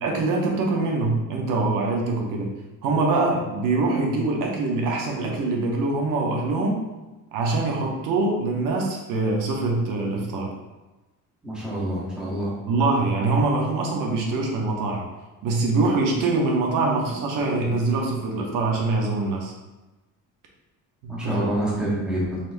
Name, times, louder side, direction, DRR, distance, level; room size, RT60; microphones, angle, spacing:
voice 1, 0.0-2.5 2.8-6.8 7.3-10.5 12.7-15.1 15.4-19.5 21.0-21.5, right 3 dB, 70° right, 0 dB, 0.8 m, -24 dB
voice 2, 11.4-12.5 21.1-22.4, right 1 dB, ahead, -6 dB, 0.8 m, -27 dB
4.0 x 3.3 x 2.6 m, 1.1 s
cardioid pair, 170°, 33 cm